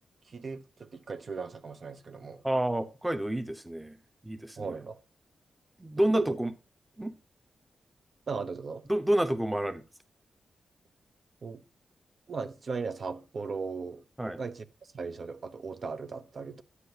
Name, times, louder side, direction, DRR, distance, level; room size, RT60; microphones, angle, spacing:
voice 1, 0.3-2.4 4.6-5.0 6.1-6.4 8.3-8.8 11.4-11.6 12.3-14.0 14.4-16.6, right 4 dB, 50° right, 0.7 m, -37 dB
voice 2, 2.4-4.0 4.2-4.7 5.8-6.5 7.0-7.1 8.9-9.8 14.2-14.4, right 1 dB, 10° right, 0.8 m, -29 dB
9.7 x 9.3 x 2.8 m
wide cardioid pair, 110°, 0 cm